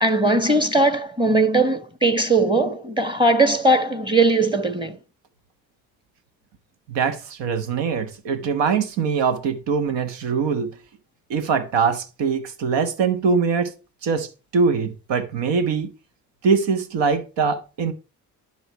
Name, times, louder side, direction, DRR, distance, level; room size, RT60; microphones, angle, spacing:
voice 1, 0.0-5.0, right 2 dB, 10° right, 1.4 m, -19 dB
voice 2, 6.9-10.7 11.3-13.7 14.0-15.9 16.4-17.9, right 5 dB, 65° right, 1.4 m, -22 dB
11.0 x 4.9 x 4.5 m
hypercardioid pair, 45°, 46 cm